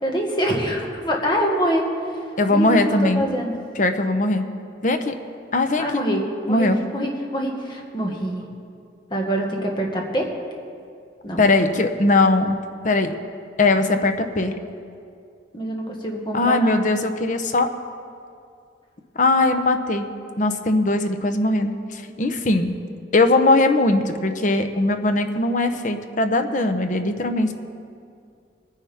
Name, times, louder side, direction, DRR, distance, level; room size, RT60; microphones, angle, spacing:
voice 1, 0.0-1.8 2.5-3.5 5.8-6.7 6.9-8.4 9.1-10.3 11.2-11.4 15.5-16.8, equal, 25° left, 0 dB, 1.8 m, -25 dB
voice 2, 2.4-3.3 3.7-4.4 4.8-5.1 5.5-6.8 11.4-12.6 12.8-13.1 13.6-14.5 16.3-17.7 19.2-20.1 20.4-22.7 23.1-27.5, left 2 dB, 45° left, 7 dB, 0.8 m, -20 dB
21.5 x 10.0 x 3.6 m, 2.4 s
head